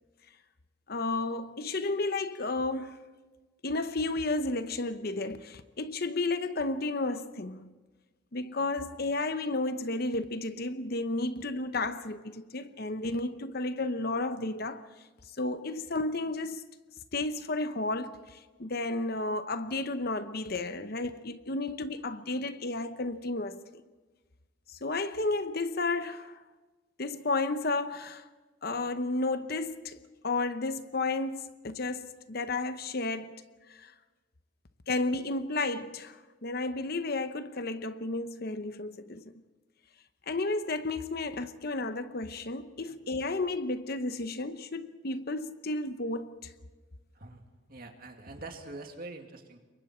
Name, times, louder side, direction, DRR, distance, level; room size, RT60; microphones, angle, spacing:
voice 1, 0.9-3.0 3.6-7.7 8.3-14.8 15.4-16.6 17.1-23.6 24.7-26.4 27.0-28.3 28.6-30.0 30.2-33.4 33.7-33.9 34.9-39.3 40.3-46.5, left 2 dB, 50° left, 0.9 m, -32 dB
voice 2, 47.7-49.7, right 2 dB, 45° right, 2.4 m, -44 dB
28.5 x 23.5 x 4.4 m
head